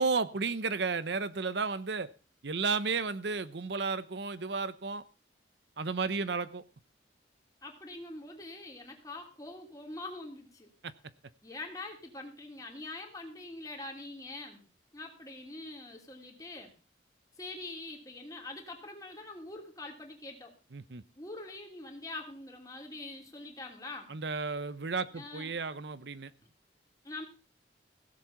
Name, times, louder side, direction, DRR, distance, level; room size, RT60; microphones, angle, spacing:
voice 1, 0.0-2.1 2.4-5.0 5.8-6.6 10.8-10.9 20.7-21.0 24.1-26.3, right 4 dB, 65° right, 14 dB, 0.8 m, -33 dB
voice 2, 7.6-10.7 11.4-14.6 14.9-16.7 17.4-20.5 21.2-24.1 25.1-25.5 27.0-27.2, left 2 dB, 20° left, 1 dB, 3.1 m, -44 dB
16.5 x 7.6 x 5.8 m, 0.36 s
head